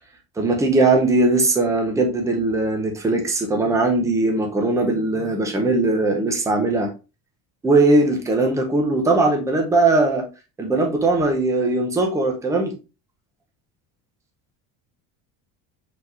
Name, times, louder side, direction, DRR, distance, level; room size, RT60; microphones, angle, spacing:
voice 1, 0.4-6.9 7.6-10.3 10.6-12.7, right 2 dB, 10° right, 3 dB, 0.6 m, -19 dB
4.6 x 4.0 x 2.5 m, 0.29 s
cardioid pair, 165°, 41 cm